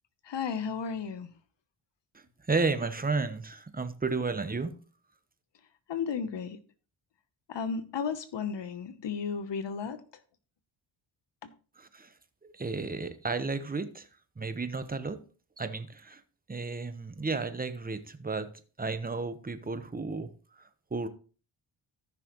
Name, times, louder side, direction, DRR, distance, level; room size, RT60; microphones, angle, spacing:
voice 1, 0.2-1.3 5.9-6.6 7.5-10.0 11.4-11.5, left 6 dB, 60° left, 1.0 m, -34 dB
voice 2, 2.1-4.7 11.8-12.1 12.4-14.1 14.4-15.2 15.6-16.2 16.5-18.5 18.8-21.1, right 3 dB, 20° right, 1.1 m, -33 dB
14.5 x 6.0 x 3.1 m
cardioid pair, 80°, 49 cm